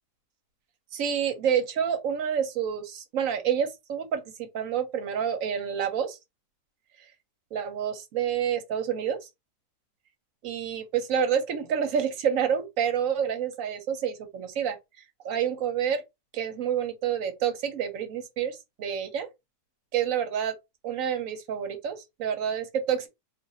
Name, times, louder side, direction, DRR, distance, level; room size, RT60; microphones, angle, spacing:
voice 1, 0.9-6.2 7.5-9.2 10.4-14.8 15.2-16.0 16.3-19.3 19.9-20.5 20.8-23.1, right 8 dB, 65° right, 1.0 m, -28 dB
2.5 x 2.5 x 4.0 m
omnidirectional pair, 1.7 m